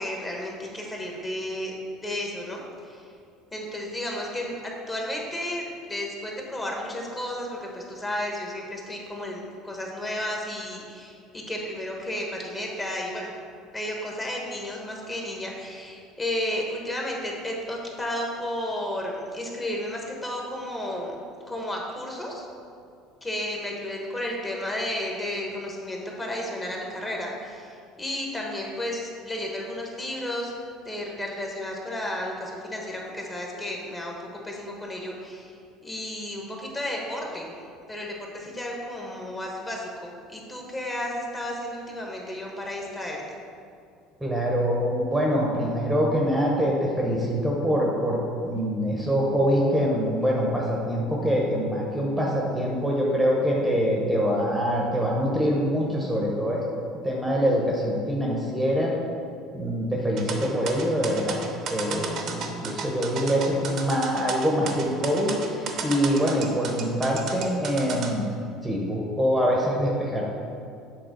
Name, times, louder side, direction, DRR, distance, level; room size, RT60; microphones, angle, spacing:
voice 1, 0.0-1.7 2.0-3.1 3.5-13.3 13.7-21.1 21.5-22.5 23.2-30.5 30.8-35.6 35.8-37.5 37.9-43.2, left 1 dB, 20° left, -1 dB, 1.2 m, -33 dB
voice 2, 44.2-56.6 57.0-58.9 59.5-61.4 61.7-68.3 68.6-70.3, equal, 5° right, -3 dB, 0.9 m, -24 dB
sound 1, 60.2-68.1, right 5 dB, 55° right, 0.8 m, -33 dB
7.8 x 3.5 x 5.1 m, 2.4 s
supercardioid pair, 115°, 0 cm